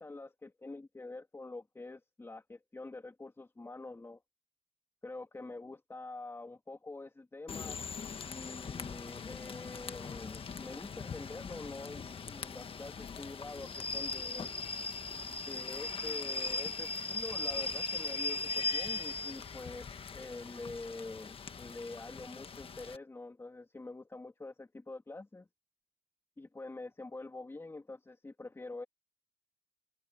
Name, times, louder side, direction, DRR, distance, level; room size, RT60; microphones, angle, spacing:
voice 1, 0.0-4.2 5.0-7.8 8.2-14.5 15.5-25.5 26.4-28.8, left 2 dB, 15° left, 2.6 m, -46 dB
Rain / Train, 7.5-23.0, left 4 dB, 35° left, 1.5 m, -39 dB
cardioid pair, 110°, 17 cm